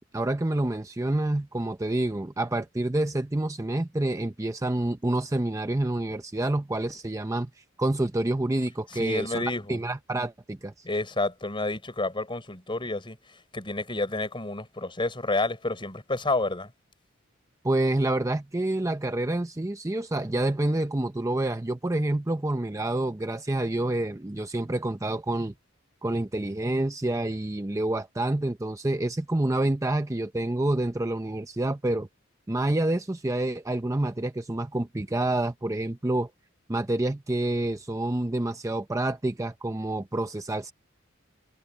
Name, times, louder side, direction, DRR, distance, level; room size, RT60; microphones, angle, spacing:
voice 1, 0.1-9.4 9.7-10.8 17.6-25.5 26.0-32.1 32.5-36.3 36.7-40.7, right 1 dB, 15° right, 0.6 m, -28 dB
voice 2, 8.9-9.8 10.8-13.2 13.5-16.7, left 2 dB, 25° left, 4.7 m, -29 dB
head